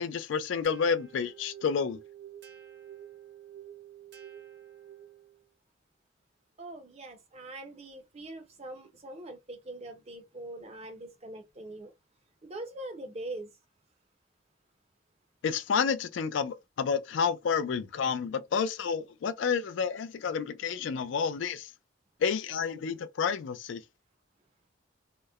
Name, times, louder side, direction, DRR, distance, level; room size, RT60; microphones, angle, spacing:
voice 1, 0.0-2.0 15.4-21.7 22.2-23.8, left 6 dB, 65° left, 0.3 m, -30 dB
sound 1, 0.6-5.4, right 10 dB, 60° right, 0.9 m, -49 dB
voice 2, 6.6-11.9 12.4-13.5, right 2 dB, 30° right, 0.6 m, -42 dB
2.9 x 2.0 x 2.3 m
head